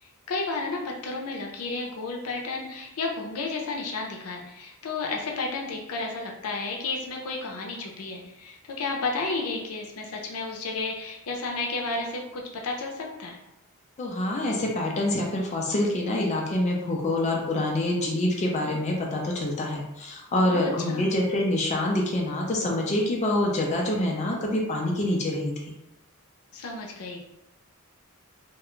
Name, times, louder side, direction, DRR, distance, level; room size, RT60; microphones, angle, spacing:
voice 1, 0.0-13.4 20.4-21.1 26.5-27.2, left 3 dB, 85° left, 0 dB, 0.5 m, -32 dB
voice 2, 14.0-25.7, left 1 dB, 30° left, -1 dB, 0.4 m, -26 dB
2.4 x 2.2 x 3.0 m, 0.93 s
head